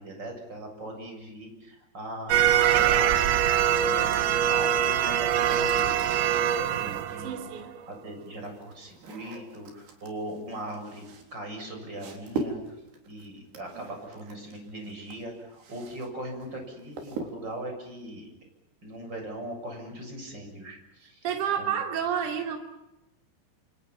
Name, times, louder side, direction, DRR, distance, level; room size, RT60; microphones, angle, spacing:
voice 1, 0.0-3.4 3.7-5.9 6.3-7.4 7.9-11.0 11.3-12.7 13.1-18.3 18.8-21.3 21.6-21.7, right 1 dB, 25° right, 3 dB, 7.8 m, -40 dB
sound 1, 2.3-7.8, right 10 dB, 90° right, 3.7 m, -23 dB
sound 2, 4.0-6.8 7.8-16.1 16.4-17.6, right 4 dB, 70° right, 5.7 m, -41 dB
voice 2, 7.2-7.7 21.2-22.6, right 8 dB, 50° right, 4 dB, 4.0 m, -29 dB
28.5 x 28.0 x 5.8 m, 0.93 s
omnidirectional pair, 5.0 m